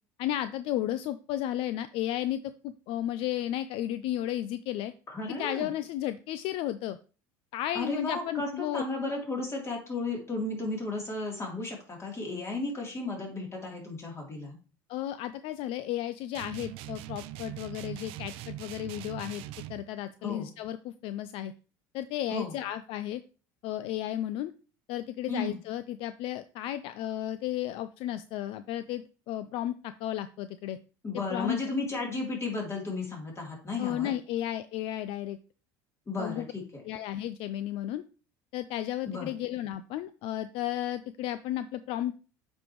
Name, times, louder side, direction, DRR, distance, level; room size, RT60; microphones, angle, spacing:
voice 1, 0.2-4.9 5.3-7.0 7.5-8.8 14.9-19.4 19.7-21.5 21.9-23.2 23.6-24.5 24.9-30.8 31.1-31.6 33.8-35.4 36.2-36.5 36.8-38.0 38.5-42.1, left 12 dB, 65° left, 13 dB, 0.4 m, -33 dB
voice 2, 5.1-5.7 7.7-14.6 20.2-20.5 22.3-22.5 25.3-25.6 31.0-34.1 36.1-36.8 39.1-39.3, left 3 dB, 25° left, -1 dB, 3.2 m, -34 dB
sound 1, 16.3-19.8, right 14 dB, 65° right, 0.5 m, -41 dB
8.2 x 5.3 x 3.1 m, 0.36 s
supercardioid pair, 100°, 10 cm